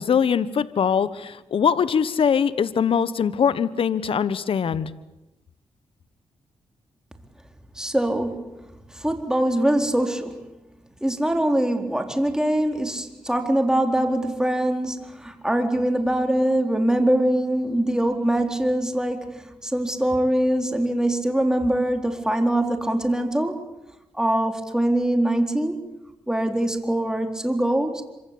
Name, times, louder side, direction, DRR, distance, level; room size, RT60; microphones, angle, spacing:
voice 1, 0.0-4.9, left 7 dB, 65° left, 16 dB, 1.2 m, -22 dB
voice 2, 7.8-8.5 8.9-10.4 11.0-23.6 24.1-25.8 26.3-28.0, right 1 dB, 5° right, 5 dB, 4.3 m, -23 dB
26.5 x 25.0 x 8.6 m, 0.98 s
cardioid pair, 60°, 10 cm